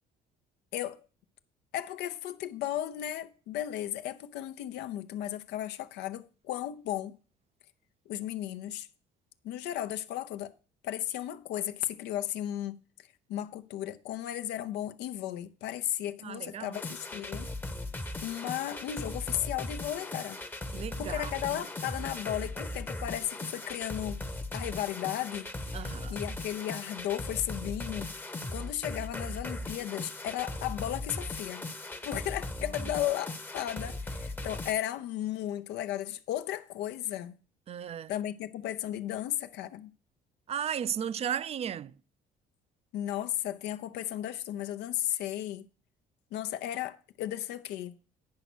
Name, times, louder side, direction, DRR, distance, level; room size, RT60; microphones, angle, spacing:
voice 1, 1.7-7.2 8.1-8.9 9.4-10.5 10.8-12.8 13.3-17.5 18.2-20.4 21.0-24.2 24.5-31.7 32.0-37.3 38.1-39.9 42.9-45.7 46.3-48.0, left 12 dB, 85° left, 0.6 m, -35 dB
voice 2, 16.2-16.8 20.7-21.6 25.7-26.2 32.1-32.2 37.7-38.1 40.5-41.9, right 9 dB, 40° right, 0.3 m, -35 dB
sound 1, 16.7-34.7, left 2 dB, 10° left, 0.8 m, -38 dB
9.5 x 5.1 x 6.1 m
cardioid pair, 110°, 17 cm